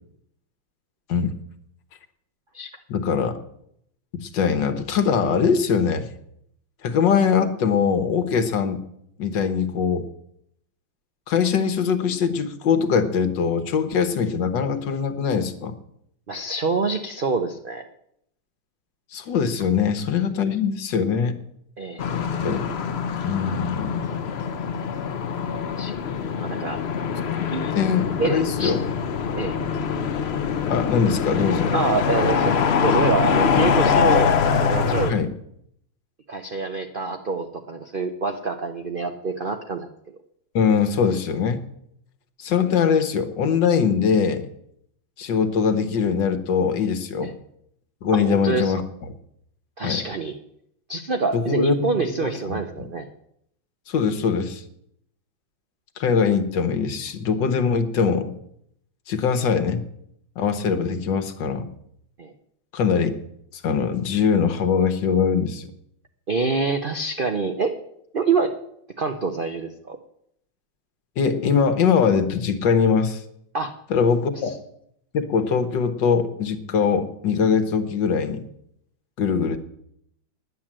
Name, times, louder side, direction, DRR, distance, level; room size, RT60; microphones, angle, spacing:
voice 1, 2.9-3.4 4.1-6.1 6.8-8.8 9.2-10.1 11.3-15.8 19.1-21.4 22.4-22.7 23.2-24.0 27.4-27.5 27.7-28.8 30.7-31.8 35.1-35.3 40.6-41.6 42.4-44.5 45.2-47.4 48.0-48.8 49.8-50.0 51.3-52.6 53.9-54.6 56.0-58.3 59.1-59.8 60.4-61.7 62.7-63.1 63.6-65.7 71.2-73.2 73.9-74.5 75.1-78.5 79.2-79.6, left 6 dB, 70° left, 9 dB, 1.7 m, -22 dB
voice 2, 16.3-17.8 21.8-22.0 25.8-25.9 26.4-26.8 27.5-27.7 28.2-28.8 29.4-29.5 31.7-32.6 32.8-35.2 36.3-39.9 47.2-47.3 48.1-48.7 49.8-50.3 50.9-53.1 62.2-62.3 66.3-67.7 68.1-68.5 69.0-70.0 73.5-73.7 74.3-74.6, right 4 dB, 65° right, 5 dB, 0.5 m, -26 dB
sound 1, 22.0-35.1, left 6 dB, 85° left, 0.5 m, -24 dB
10.5 x 9.5 x 7.4 m, 0.73 s
omnidirectional pair, 2.1 m